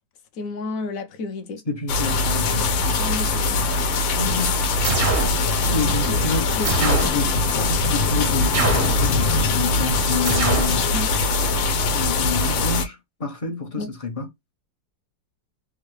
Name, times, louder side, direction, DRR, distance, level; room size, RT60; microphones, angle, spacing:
voice 1, 0.3-1.6 2.9-3.6 4.2-4.5 6.0-6.2 6.6-6.7 10.9-11.2 13.8-13.9, left 3 dB, 65° left, 0.9 m, -31 dB
voice 2, 1.7-2.8 4.1-4.6 5.7-10.9 11.9-14.3, left 3 dB, 35° left, 0.6 m, -29 dB
sound 1, 1.9-12.9, left 3 dB, 80° left, 1.5 m, -22 dB
sound 2, 4.8-5.4 6.6-7.2 8.5-9.0 10.2-10.8, right 3 dB, 50° right, 0.6 m, -23 dB
3.5 x 2.3 x 3.1 m
omnidirectional pair, 2.0 m